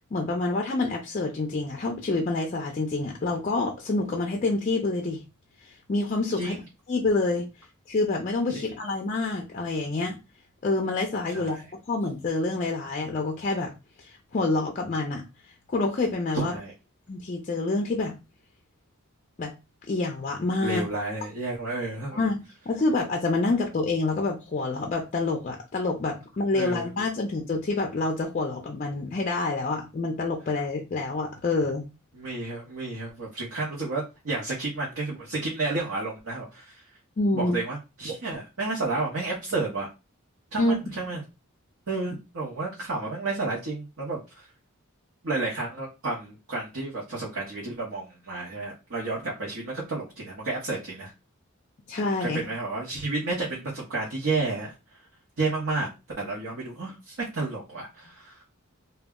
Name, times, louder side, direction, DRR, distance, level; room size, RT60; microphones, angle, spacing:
voice 1, 0.1-5.2 5.6-6.6 6.9-7.5 7.9-10.2 10.6-13.7 14.0-15.2 15.7-16.5 17.1-18.2 19.4-19.5 19.9-20.8 22.1-22.4 22.7-31.8 37.2-37.6 40.6-40.8 51.9-52.4, left 3 dB, 35° left, 0.4 m, -27 dB
voice 2, 16.3-16.7 20.6-22.2 26.5-26.9 32.1-36.8 37.3-39.9 40.5-41.2 41.9-44.5 45.2-51.1 52.2-54.7 55.4-55.9 56.2-58.4, right 3 dB, 65° right, 0.8 m, -31 dB
2.2 x 2.0 x 3.5 m
head